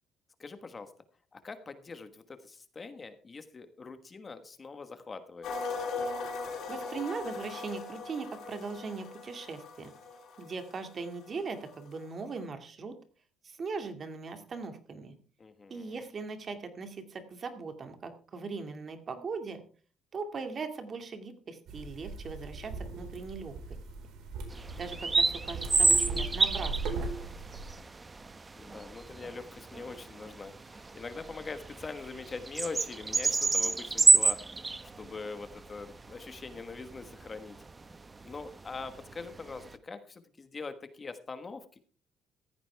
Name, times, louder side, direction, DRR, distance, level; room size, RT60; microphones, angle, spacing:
voice 1, 0.4-0.9 1.3-5.5 15.4-16.0 28.5-34.4 35.0-37.6 38.2-41.8, left 4 dB, 25° left, 9 dB, 1.4 m, -43 dB
sound 1, 5.4-11.4 11.7-11.9, left 3 dB, 60° left, 5.5 m, -39 dB
voice 2, 6.7-9.9 10.4-13.0 13.4-15.1 15.7-19.6 20.1-23.5 24.8-27.1, right 4 dB, 35° right, 7 dB, 2.2 m, -39 dB
sound 2, 21.7-27.7, right 3 dB, 75° right, 4.5 m, -38 dB
sound 3, 24.5-39.7, right 3 dB, 20° right, 0.8 m, -29 dB
15.0 x 14.5 x 3.4 m, 0.41 s
cardioid pair, 135°, 0 cm